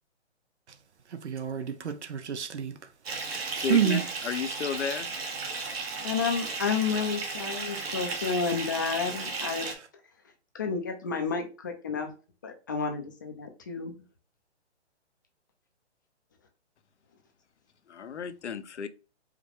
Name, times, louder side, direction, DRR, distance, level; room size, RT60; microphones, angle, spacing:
voice 1, 1.1-2.7 3.3-4.0, right 8 dB, 75° right, 0.8 m, -29 dB
Bathtub (filling or washing) / Fill (with liquid), 3.0-9.7, right 4 dB, 60° right, 1.2 m, -35 dB
voice 2, 3.6-5.1 17.9-18.9, left 6 dB, 80° left, 0.7 m, -33 dB
voice 3, 6.0-9.7 10.5-12.1 12.4-13.9, left 5 dB, 20° left, 0.4 m, -31 dB
4.9 x 2.2 x 3.1 m
hypercardioid pair, 140°, 34 cm